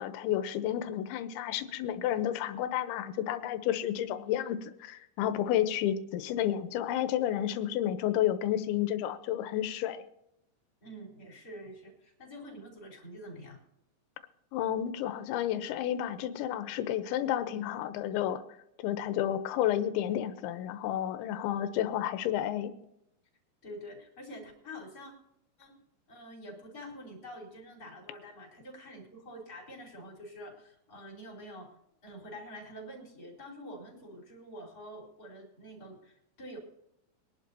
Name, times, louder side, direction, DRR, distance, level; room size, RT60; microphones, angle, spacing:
voice 1, 0.0-10.0 14.5-18.4 18.8-22.7, left 11 dB, 80° left, 10 dB, 3.1 m, -31 dB
voice 2, 10.8-13.6 23.6-25.1 25.6-25.8 26.1-31.7 32.0-36.6, equal, 20° left, -1 dB, 4.5 m, -47 dB
23.0 x 11.5 x 2.8 m, 0.80 s
omnidirectional pair, 5.5 m